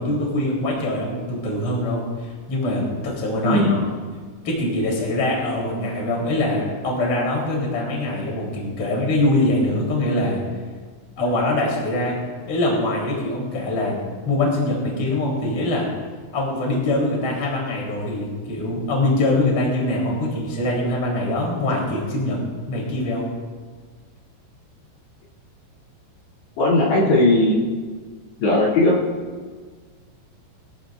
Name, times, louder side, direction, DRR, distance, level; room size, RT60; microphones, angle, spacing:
voice 1, 0.0-3.8 4.4-10.4 11.2-12.2 12.4-15.9 16.3-22.4 22.7-23.3, left 1 dB, 30° left, -3 dB, 4.1 m, -23 dB
voice 2, 3.4-3.8 26.6-27.6 28.4-28.9, left 2 dB, 55° left, -7 dB, 4.7 m, -17 dB
22.5 x 15.5 x 2.6 m, 1.5 s
omnidirectional pair, 6.0 m